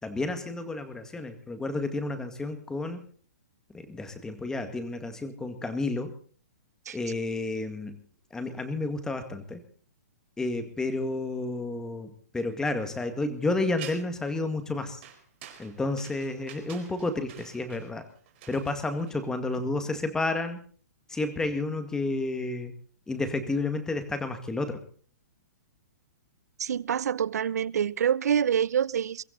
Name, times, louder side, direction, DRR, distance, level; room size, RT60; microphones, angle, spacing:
voice 1, 0.0-3.0 3.7-6.1 6.9-8.0 8.3-9.6 10.4-15.0 15.6-18.0 18.5-20.6 21.1-22.7 23.1-24.8, left 2 dB, 5° left, 2.1 m, -31 dB
sound 1, 13.8-14.3 15.0-19.5, right 10 dB, 45° right, 4.4 m, -47 dB
voice 2, 26.6-29.2, right 8 dB, 75° right, 0.6 m, -26 dB
23.0 x 15.0 x 4.1 m
hypercardioid pair, 150°, 9 cm